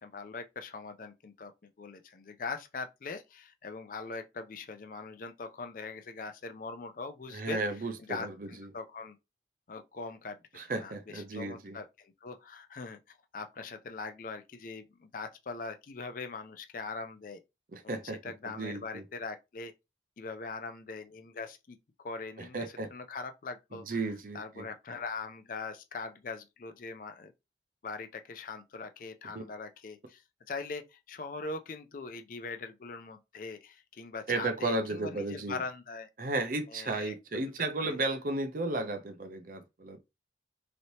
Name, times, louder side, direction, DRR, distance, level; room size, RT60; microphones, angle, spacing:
voice 1, 0.0-7.6 8.1-9.2 9.7-13.0 13.3-17.4 18.0-19.7 20.2-24.0 24.3-27.3 27.8-30.2 30.5-36.1 36.7-37.1 37.8-38.0, left 4 dB, 45° left, 0.4 m, -41 dB
voice 2, 7.3-8.7 10.5-11.8 17.7-18.2 18.4-19.0 22.4-22.9 23.7-24.7 29.3-29.4 34.3-35.6 36.2-40.0, right 2 dB, 50° right, 0.5 m, -34 dB
3.1 x 2.8 x 2.7 m
head